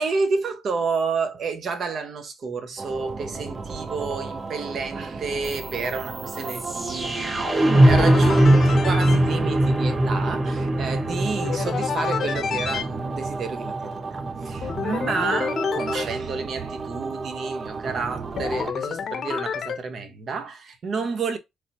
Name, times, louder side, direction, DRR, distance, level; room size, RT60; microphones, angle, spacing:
voice 1, 0.0-21.4, right 4 dB, 55° right, 0.8 m, -30 dB
sound 1, 2.8-18.7, right 4 dB, 40° right, 0.4 m, -33 dB
sound 2, 5.5-15.5, right 1 dB, 20° right, 0.9 m, -22 dB
sound 3, 7.7-9.2 11.4-12.8 14.6-16.0 18.4-19.8, left 7 dB, 55° left, 0.6 m, -29 dB
3.4 x 2.1 x 4.0 m
cardioid pair, 90°, 0 cm